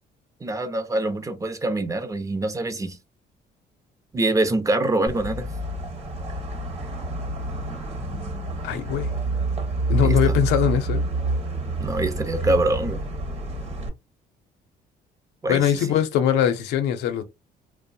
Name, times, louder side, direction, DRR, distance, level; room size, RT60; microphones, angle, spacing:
voice 1, 0.4-3.0 4.1-5.4 10.0-10.4 11.8-13.1 15.4-15.6, right 2 dB, 20° right, 0.5 m, -24 dB
sound 1, 5.1-13.9, right 2 dB, 40° right, 1.0 m, -28 dB
voice 2, 8.6-9.1 9.9-11.0 15.5-17.2, left 9 dB, 85° left, 0.6 m, -21 dB
2.6 x 2.0 x 2.6 m
cardioid pair, 110°, 17 cm